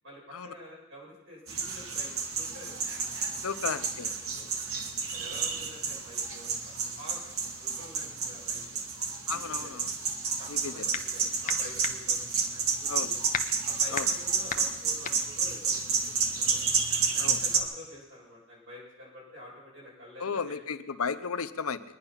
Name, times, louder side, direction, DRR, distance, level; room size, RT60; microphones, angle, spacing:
voice 1, 0.0-2.8 3.4-4.6 5.1-8.6 9.3-9.7 10.4-13.2 13.6-16.6 17.1-20.6, left 1 dB, 60° right, -4 dB, 7.4 m, -49 dB
sound 1, 1.5-17.6, right 5 dB, 80° right, 1.7 m, -31 dB
voice 2, 3.4-4.1 9.3-9.9 10.5-10.8 12.9-13.1 13.9-14.1 17.2-17.4 20.2-21.8, left 5 dB, 90° left, 11 dB, 0.7 m, -34 dB
sound 2, 10.5-11.2 11.5-16.5, left 7 dB, 35° left, 0.7 m, -37 dB
22.0 x 10.0 x 5.8 m, 1.1 s
head